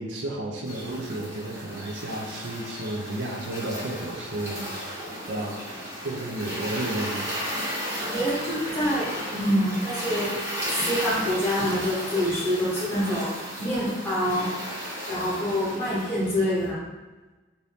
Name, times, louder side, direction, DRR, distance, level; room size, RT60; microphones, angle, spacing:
voice 1, 0.0-4.7 5.3-5.6 6.0-7.3, right 1 dB, 60° right, -1 dB, 0.5 m, -32 dB
sound 1, 0.6-16.7, equal, 15° right, 0.9 m, -34 dB
voice 2, 8.0-10.4 10.7-13.3 13.6-14.5 15.1-16.8, equal, 10° left, -9 dB, 1.1 m, -26 dB
2.7 x 2.6 x 3.3 m, 1.2 s
head